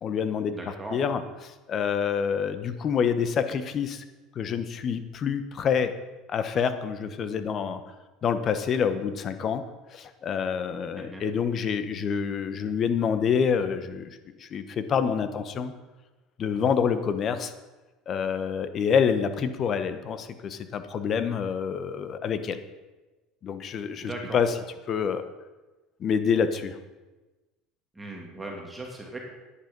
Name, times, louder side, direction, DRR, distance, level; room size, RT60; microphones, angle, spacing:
voice 1, 0.0-1.2 1.5-4.0 4.3-5.9 6.3-7.8 8.2-9.6 9.9-15.7 16.4-17.5 18.1-22.6 23.4-24.5 24.9-25.3 26.0-26.8, left 7 dB, 40° left, 10 dB, 1.1 m, -27 dB
voice 2, 0.5-1.1 10.9-11.2 24.0-24.4 27.9-29.2, right 2 dB, 10° right, -1 dB, 2.5 m, -38 dB
11.0 x 9.9 x 5.4 m, 1.1 s
supercardioid pair, 115°, 0 cm